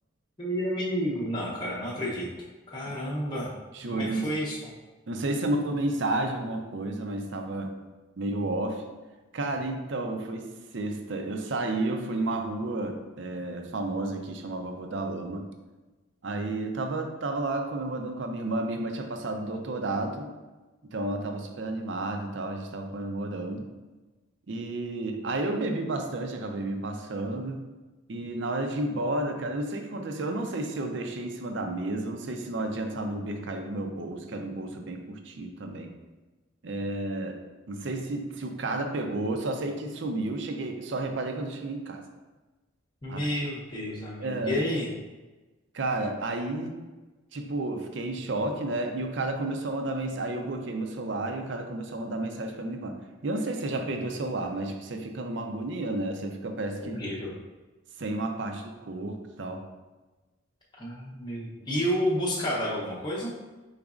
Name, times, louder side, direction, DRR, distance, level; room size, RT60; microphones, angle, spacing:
voice 1, 0.4-2.3 2.7-3.5 3.9-4.6 43.0-44.9 56.8-57.4 60.8-63.3, equal, 20° left, -6 dB, 0.7 m, -30 dB
voice 2, 3.7-4.3 5.1-7.7 8.2-8.8 9.3-15.5 16.2-20.3 20.8-23.7 24.5-27.7 28.1-35.9 36.6-37.4 37.7-42.0 43.1-43.3 44.2-44.6 45.7-46.8 47.3-53.0 53.2-57.0 58.0-59.6, right 2 dB, 60° right, 4 dB, 0.5 m, -31 dB
5.1 x 4.0 x 2.4 m, 1.2 s
head